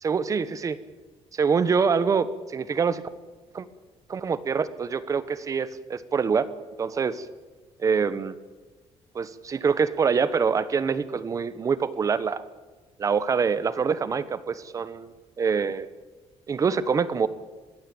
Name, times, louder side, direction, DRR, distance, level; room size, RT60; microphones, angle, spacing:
voice 1, 0.0-0.7 1.3-3.0 3.5-3.7 4.1-6.5 6.8-7.3 7.8-8.3 9.1-12.4 13.0-15.9 16.5-17.3, right 5 dB, 30° right, 15 dB, 1.0 m, -25 dB
22.0 x 15.5 x 8.7 m, 1.3 s
cardioid pair, 170°, 11 cm